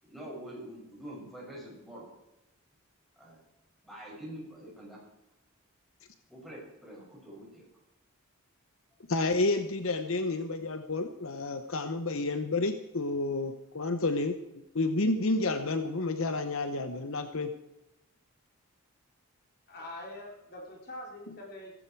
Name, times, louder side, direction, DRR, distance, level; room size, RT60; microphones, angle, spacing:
voice 1, 0.0-2.1 3.2-3.4 3.8-5.0 6.3-7.6 11.6-11.7, right 1 dB, ahead, -4 dB, 6.8 m, -45 dB
voice 2, 9.1-14.3 14.7-17.5, left 2 dB, 65° left, 8 dB, 0.9 m, -30 dB
voice 3, 19.7-21.7, left 1 dB, 45° left, -1 dB, 3.4 m, -44 dB
15.5 x 15.0 x 4.6 m, 0.91 s
head